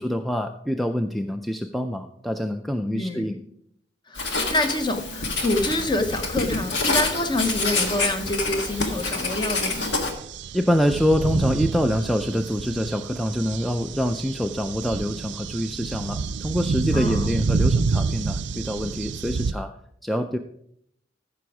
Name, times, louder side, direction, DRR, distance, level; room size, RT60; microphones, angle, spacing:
voice 1, 0.0-3.4 10.5-19.7 20.0-20.4, equal, ahead, 0.3 m, -25 dB
voice 2, 2.9-3.4 4.1-10.0 16.9-17.4, left 1 dB, 25° left, 0.8 m, -27 dB
Writing, 4.1-10.1, left 3 dB, 70° left, 1.6 m, -27 dB
sound 1, 5.6-19.5, right 4 dB, 70° right, 0.5 m, -29 dB
14.0 x 6.1 x 4.8 m
head